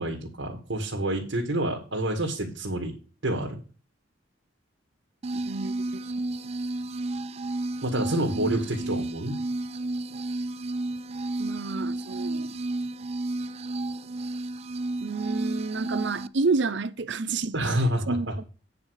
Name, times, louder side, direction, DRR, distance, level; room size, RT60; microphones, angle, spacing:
voice 1, 0.0-2.9 3.2-3.6 7.8-9.4 17.5-18.4, right 1 dB, 85° right, 2.1 m, -28 dB
sound 1, 5.2-16.3, right 2 dB, 30° right, 0.3 m, -32 dB
voice 2, 11.4-12.6 15.0-17.6 18.1-18.4, right 4 dB, 70° right, 0.7 m, -29 dB
9.1 x 5.2 x 6.5 m
head